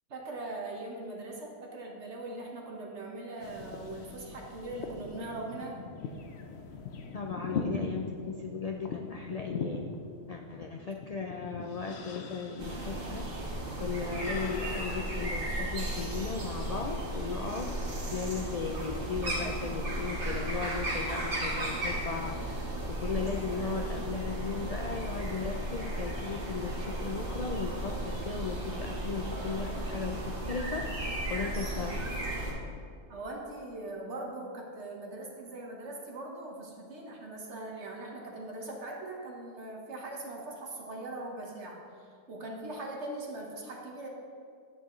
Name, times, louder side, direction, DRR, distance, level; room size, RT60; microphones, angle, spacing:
voice 1, 0.1-5.8 33.1-44.1, right 2 dB, 60° right, -1 dB, 1.4 m, -41 dB
sound 1, 3.4-15.8 16.3-17.1, left 4 dB, 60° left, 0.9 m, -41 dB
voice 2, 7.1-9.8 10.3-13.3 13.8-17.8 18.1-32.0, left 5 dB, 85° left, 3 dB, 0.3 m, -37 dB
sound 2, 12.6-32.5, right 1 dB, 45° right, 1.6 m, -35 dB
10.0 x 9.0 x 3.1 m, 2.2 s
omnidirectional pair, 1.3 m